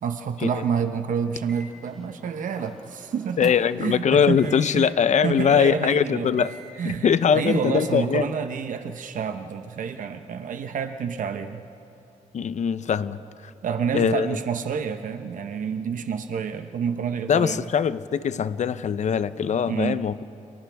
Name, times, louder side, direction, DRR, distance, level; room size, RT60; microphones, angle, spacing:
voice 1, 0.0-3.5 3.8-4.9 5.2-6.5 6.8-11.6 13.6-17.6 19.7-20.0, right 7 dB, 80° right, 7 dB, 0.9 m, -28 dB
Microwave oven, 1.5-3.8 4.4-4.7 5.4-5.7 6.4-6.7 7.4-7.7, right 2 dB, ahead, 4.7 m, -47 dB
voice 2, 3.4-6.5 6.8-8.3 12.3-13.5 13.9-14.4 17.3-20.2, left 7 dB, 60° left, 13 dB, 0.7 m, -22 dB
30.0 x 29.5 x 3.5 m, 2.8 s
wide cardioid pair, 115°, 13 cm